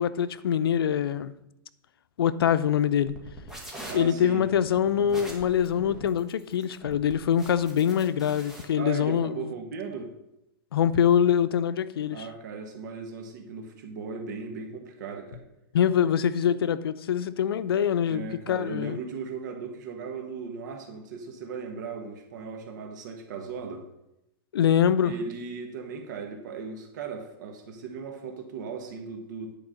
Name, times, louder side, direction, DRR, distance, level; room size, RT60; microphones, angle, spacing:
voice 1, 0.0-1.3 2.2-3.1 3.9-9.5 10.7-12.3 15.7-19.0 24.5-25.1, left 9 dB, 90° left, 0.6 m, -24 dB
sound 1, 3.1-8.6, equal, 5° right, 1.7 m, -43 dB
voice 2, 3.9-4.4 8.8-10.1 12.1-15.4 18.0-23.8 25.0-29.5, right 5 dB, 55° right, 1.4 m, -37 dB
10.0 x 4.6 x 6.5 m
hypercardioid pair, 165°, 12 cm